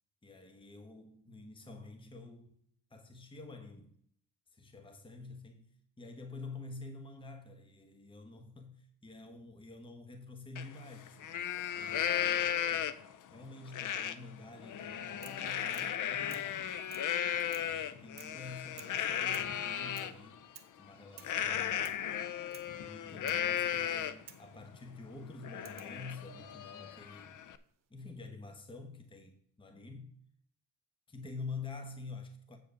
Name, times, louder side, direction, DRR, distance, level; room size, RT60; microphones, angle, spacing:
voice 1, 0.2-2.6 2.9-3.9 4.5-5.7 6.0-13.0 13.3-16.7 17.3-20.5 20.8-22.0 22.7-27.4 27.9-30.1 31.1-32.6, left 3 dB, 15° left, 1.0 m, -48 dB
Livestock farm animals working animals, 10.6-10.7 11.1-13.2 13.7-14.2 14.6-20.1 21.2-24.3 24.7-24.8 25.2-27.6, left 10 dB, 55° left, 0.6 m, -35 dB
sound 1, 15.2-15.5 15.7-16.0 16.3-16.5 16.9-17.1 17.5-17.8 18.2-18.4 18.8-19.0 19.3-19.6 20.0-20.2 20.6-20.8 21.2-21.4 21.8-22.1 22.5-22.7 23.3-23.5 24.3-24.5 25.7-26.0 27.1-27.6, right 10 dB, 60° right, 0.9 m, -54 dB
8.2 x 4.9 x 6.2 m
cardioid pair, 95°, 37 cm